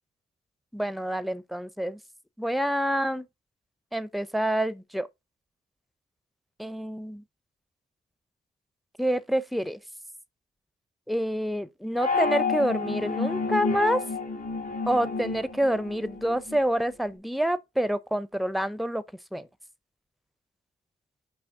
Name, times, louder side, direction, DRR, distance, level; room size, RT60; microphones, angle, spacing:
voice 1, 0.7-2.0 2.4-3.2 3.9-5.1 6.6-7.2 9.0-9.8 11.1-14.0 14.9-19.0 19.3-19.5, equal, ahead, 0.6 m, -27 dB
sound 1, 11.9-16.6, left 4 dB, 50° left, 2.2 m, -30 dB
6.2 x 5.0 x 4.7 m
wide cardioid pair, 115°, 19 cm